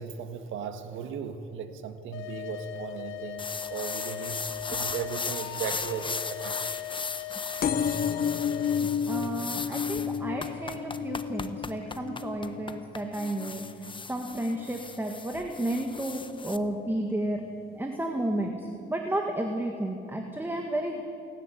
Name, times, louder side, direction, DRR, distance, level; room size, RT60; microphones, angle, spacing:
voice 1, 0.0-6.6, right 6 dB, 85° right, 1.6 m, -37 dB
sound 1, 2.1-8.8, left 13 dB, 85° left, 1.2 m, -39 dB
sound 2, 3.4-16.6, left 4 dB, 25° left, 1.0 m, -37 dB
sound 3, 7.6-14.8 15.3-15.8 16.7-16.8 17.0-17.1 17.3-17.4, left 7 dB, 50° left, 0.9 m, -32 dB
voice 2, 8.0-17.4 17.7-21.0, right 1 dB, 10° right, 2.0 m, -32 dB
27.5 x 11.0 x 9.4 m
cardioid pair, 90°, 20 cm